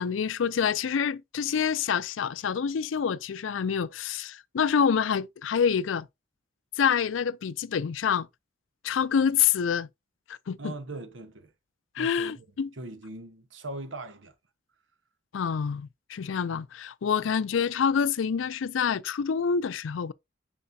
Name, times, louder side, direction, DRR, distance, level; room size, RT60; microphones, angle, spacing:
voice 1, 0.0-6.1 6.8-8.3 8.8-9.9 10.3-10.7 12.0-12.7 15.3-20.1, left 7 dB, 80° left, 0.4 m, -27 dB
voice 2, 10.6-11.5 12.0-12.5 12.7-14.3 17.3-17.4, right 2 dB, 80° right, 1.1 m, -40 dB
9.5 x 4.3 x 2.7 m
head